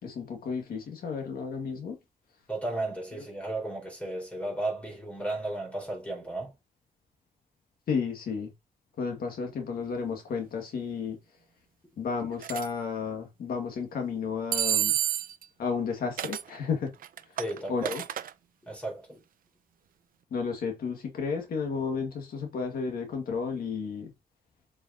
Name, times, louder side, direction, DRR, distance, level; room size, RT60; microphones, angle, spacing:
voice 1, 0.0-2.0 3.2-3.3 7.9-8.5 9.0-11.2 12.0-15.0 15.6-16.9 17.7-18.0 20.3-24.1, left 5 dB, 80° left, 1.9 m, -32 dB
voice 2, 2.5-6.5 17.4-17.9 18.7-19.2, right 2 dB, 10° left, 4.4 m, -34 dB
sound 1, 12.4-12.7 14.5-15.4 16.2-16.5 17.0-18.3, right 11 dB, 70° right, 0.5 m, -29 dB
7.4 x 5.2 x 2.8 m
wide cardioid pair, 155°, 15 cm